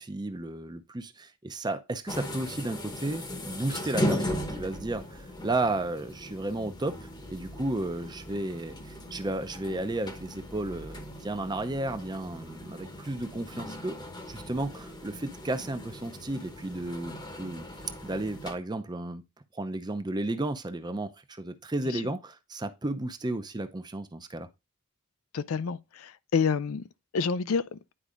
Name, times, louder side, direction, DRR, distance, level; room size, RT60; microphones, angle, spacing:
voice 1, 0.0-13.9 14.3-17.6 18.0-19.2 19.5-24.5, right 2 dB, 20° right, 0.6 m, -33 dB
sound 1, 2.1-18.5, equal, 20° left, 0.9 m, -38 dB
voice 2, 25.3-26.8 27.1-27.8, left 5 dB, 75° left, 0.4 m, -28 dB
9.9 x 4.6 x 2.5 m
head